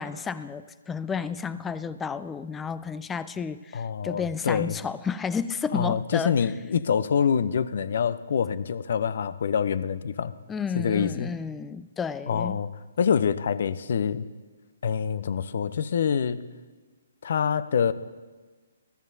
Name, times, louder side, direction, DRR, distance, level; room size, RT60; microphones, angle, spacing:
voice 1, 0.0-6.4 10.5-12.6, left 6 dB, 10° left, 15 dB, 0.3 m, -32 dB
voice 2, 3.7-4.8 5.7-10.3 10.8-11.3 12.3-12.7 13.0-14.3 14.8-16.4 17.2-17.9, left 7 dB, 60° left, 15 dB, 0.6 m, -26 dB
21.0 x 12.5 x 2.7 m, 1.3 s
figure-of-eight pair, 135°, 0 cm